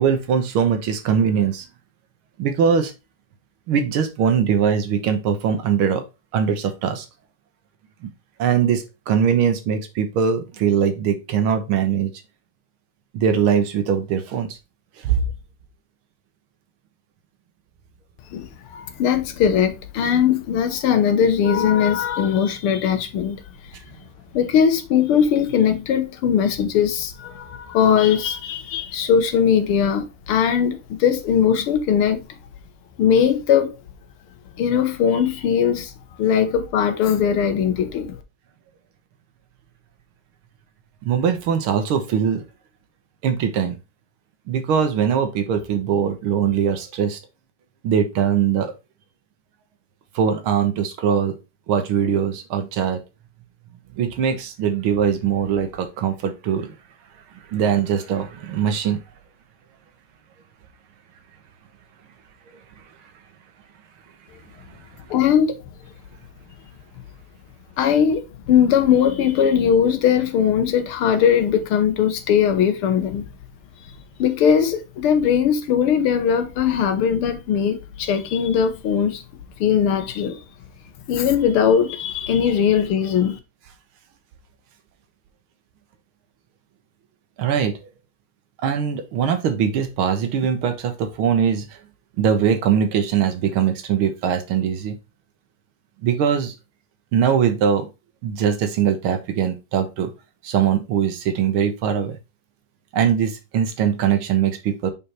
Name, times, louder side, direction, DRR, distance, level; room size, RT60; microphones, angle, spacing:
voice 1, 0.0-1.7 2.4-2.9 3.7-6.0 6.3-7.1 8.4-12.1 13.1-14.6 15.0-15.2 41.0-42.4 43.2-43.8 44.5-47.2 47.8-48.7 50.2-51.3 51.7-53.0 53.9-56.8 57.5-59.0 87.4-87.7 88.6-91.8 92.2-95.0 96.0-96.6 97.1-97.9 98.2-100.1 100.4-102.2 102.9-104.9, right 8 dB, 75° right, 1.8 m, -21 dB
voice 2, 18.3-23.4 24.3-32.2 33.0-33.7 34.6-35.9 36.2-38.2 65.1-65.6 67.8-73.2 74.2-79.2 79.6-80.4 81.1-83.4, left 8 dB, 80° left, 1.9 m, -19 dB
5.4 x 4.2 x 4.3 m
omnidirectional pair, 2.4 m